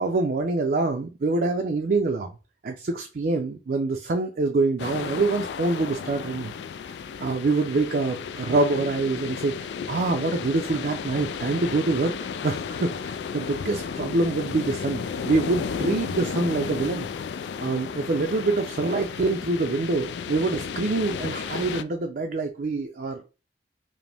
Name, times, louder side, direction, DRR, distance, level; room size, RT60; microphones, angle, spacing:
voice 1, 0.0-2.3 2.6-6.5 7.2-12.1 12.4-17.1 17.6-23.3, right 3 dB, 50° right, 4 dB, 0.4 m, -25 dB
sound 1, 4.8-21.8, left 6 dB, 70° left, 0.3 m, -33 dB
4.9 x 2.1 x 3.4 m, 0.32 s
head